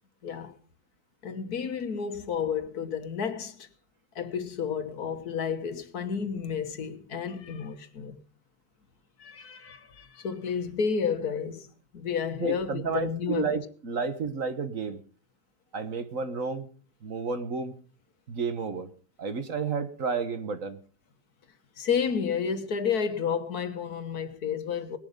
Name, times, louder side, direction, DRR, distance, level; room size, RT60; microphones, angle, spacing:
voice 1, 0.2-0.5 1.2-3.7 4.1-8.2 9.2-11.7 11.9-13.5 21.8-25.0, left 6 dB, 65° left, 1.7 m, -31 dB
voice 2, 12.4-15.0 15.7-16.7 17.0-17.7 18.3-18.9 19.2-20.8, right 5 dB, 50° right, 1.6 m, -31 dB
19.5 x 11.5 x 5.3 m
omnidirectional pair, 1.8 m